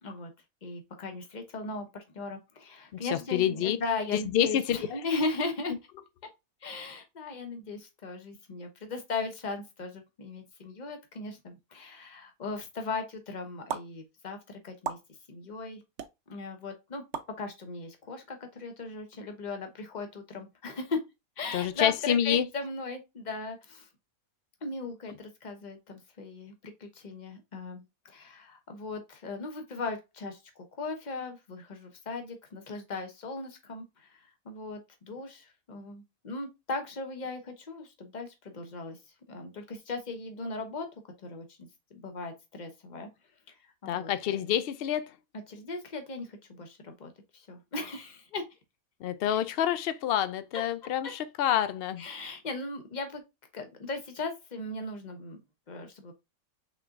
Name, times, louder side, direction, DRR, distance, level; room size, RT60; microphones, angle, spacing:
voice 1, 0.6-5.7 6.6-15.0 15.3-15.8 16.3-17.0 17.4-21.0 21.4-23.9 24.6-39.0 39.3-41.6 41.9-43.1 43.8-44.5 45.5-48.4 49.3-49.4 50.5-50.6 51.0-51.1 52.0-53.2 53.5-55.4 55.7-56.1, left 3 dB, 35° left, 1.0 m, -38 dB
voice 2, 3.0-3.8 4.1-5.0 21.5-22.5 43.9-45.1 49.0-52.0, left 10 dB, 70° left, 0.5 m, -28 dB
sound 1, 13.7-13.8 14.8-15.0 16.0-16.1 17.1-17.3, right 7 dB, 60° right, 0.8 m, -33 dB
5.7 x 3.7 x 2.4 m
omnidirectional pair, 1.5 m